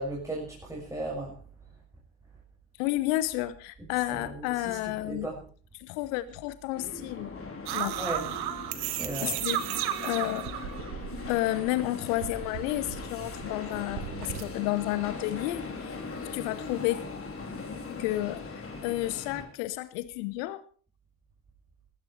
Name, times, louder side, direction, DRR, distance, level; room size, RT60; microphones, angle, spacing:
voice 1, 0.0-1.4 4.1-4.8 5.0-5.3 8.0-8.2 9.0-9.4, right 1 dB, 5° right, -3 dB, 6.3 m, -35 dB
voice 2, 2.8-5.3 5.7-7.3 7.7-8.0 9.2-10.8 11.3-17.0 17.9-20.6, left 17 dB, 60° left, 16 dB, 1.0 m, -31 dB
sound 1, 6.7-19.5, left 4 dB, 30° left, 3.7 m, -40 dB
sound 2, 7.7-11.7 12.0-14.4, right 12 dB, 55° right, 1.6 m, -34 dB
20.5 x 15.5 x 3.3 m, 0.42 s
figure-of-eight pair, 50°, 47 cm